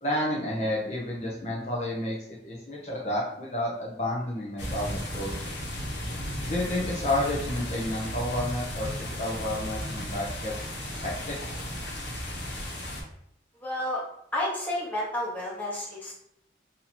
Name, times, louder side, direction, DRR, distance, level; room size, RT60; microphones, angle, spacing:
voice 1, 0.0-2.2 2.4-5.3 6.4-8.9 9.2-10.7 11.0-11.4, left 1 dB, 40° left, -4 dB, 0.6 m, -30 dB
sound 1, 4.6-13.0, equal, 85° left, 0.9 m, -35 dB
sound 2, 5.0-10.1, right 1 dB, 50° right, 0.4 m, -43 dB
voice 2, 13.6-14.0 14.3-16.1, left 1 dB, 10° left, -6 dB, 0.9 m, -30 dB
2.8 x 2.7 x 4.2 m, 0.75 s
head